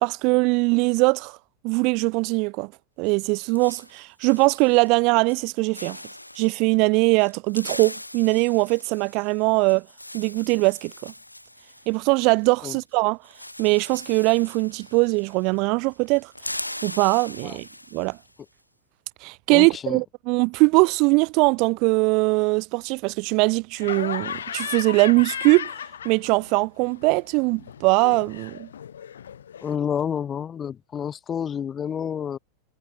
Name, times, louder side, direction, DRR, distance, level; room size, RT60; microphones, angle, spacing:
voice 1, 0.0-1.4 1.6-2.7 3.0-6.0 6.4-9.8 10.1-11.1 11.9-13.2 13.6-16.3 16.8-18.2 19.2-25.7 26.0-28.7, right 29 dB, 45° right, 0.3 m, -21 dB
sound 1, 3.0-5.0 5.3-5.5 5.7-6.6 7.2-12.7 12.9-13.0 13.2-15.6 15.9-18.3, left 1 dB, 85° left, 0.5 m, -40 dB
voice 2, 19.5-20.0 29.6-32.4, left 8 dB, 25° left, 1.1 m, -29 dB
Laughter, 23.8-26.6 26.8-29.7, left 8 dB, 65° left, 1.2 m, -35 dB
figure-of-eight pair, 90°, 0 cm